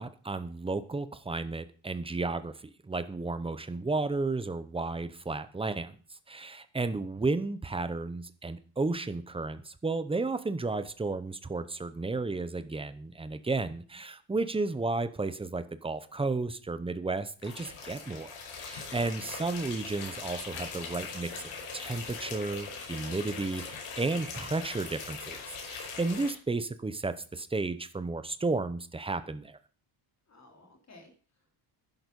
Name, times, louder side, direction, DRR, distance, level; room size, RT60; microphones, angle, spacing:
voice 1, 0.0-6.0 6.3-21.4 21.7-29.6, right 3 dB, 10° right, 12 dB, 0.8 m, -33 dB
sound 1, 17.4-26.3, left 5 dB, 80° left, 5.2 m, -41 dB
voice 2, 18.9-19.3 30.3-31.6, left 2 dB, 35° left, 2 dB, 3.4 m, -56 dB
11.0 x 11.0 x 5.3 m, 0.40 s
cardioid pair, 175°, 49 cm